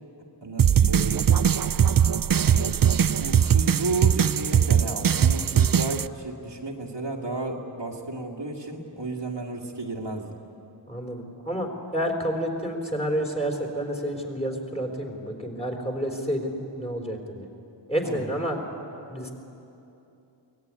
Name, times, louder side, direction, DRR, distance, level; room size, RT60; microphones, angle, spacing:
voice 1, 0.4-1.2 2.4-10.3 18.0-18.3, right 2 dB, 65° right, 0 dB, 2.3 m, -33 dB
sound 1, 0.6-6.1, right 8 dB, 50° right, 0.5 m, -21 dB
voice 2, 10.9-17.5 17.9-18.6 19.1-19.3, equal, 15° left, 2 dB, 3.8 m, -29 dB
23.5 x 17.5 x 9.6 m, 2.8 s
wide cardioid pair, 55°, 46 cm